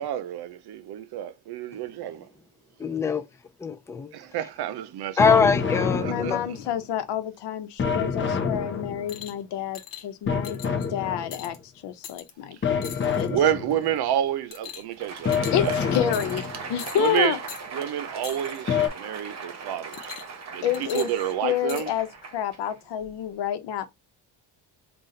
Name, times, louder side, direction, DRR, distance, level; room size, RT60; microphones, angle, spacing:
voice 1, 0.0-2.3 4.1-5.5 6.0-6.4 13.3-15.8 16.9-17.4 17.7-20.1 20.5-21.9, right 10 dB, 65° right, 0.7 m, -29 dB
voice 2, 2.8-3.2 3.6-4.1 5.2-6.4, left 5 dB, 10° left, 0.3 m, -23 dB
sound 1, 5.2-6.8 7.8-9.3 10.3-11.6 12.6-14.0 15.3-16.8 18.7-18.9, left 6 dB, 30° left, 0.7 m, -27 dB
voice 3, 6.1-10.6 10.9-11.6 11.8-13.3 15.5-17.4 20.6-21.1 21.4-22.1 22.3-23.9, left 10 dB, 80° left, 0.9 m, -29 dB
sound 2, 9.1-9.4 9.7-10.0 10.4-10.9 11.3-11.6 12.0-12.3 12.8-13.3 13.7-14.0 14.5-15.0 15.3-15.7 16.1-16.5 16.8-17.1 17.5-17.6 18.2-18.6 19.9-20.4 20.7-21.8 22.7-22.8, left 8 dB, 55° left, 1.1 m, -41 dB
Crowd, 14.8-23.3, right 4 dB, 40° right, 1.0 m, -39 dB
4.1 x 2.4 x 3.8 m
cardioid pair, 150°, 41 cm